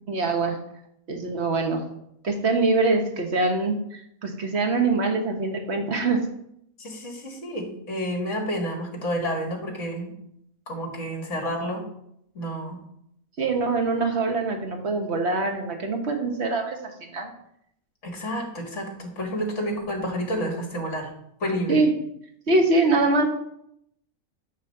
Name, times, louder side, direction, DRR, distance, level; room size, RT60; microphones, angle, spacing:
voice 1, 0.1-0.6 1.1-1.8 2.2-6.2 13.4-17.3 21.7-21.9 22.5-23.2, right 3 dB, 50° right, 4 dB, 1.3 m, -24 dB
voice 2, 6.8-10.1 10.7-11.9 12.4-12.8 18.0-21.1 21.4-21.8, equal, 60° left, 0 dB, 2.1 m, -30 dB
9.3 x 3.2 x 6.4 m, 0.74 s
omnidirectional pair, 1.5 m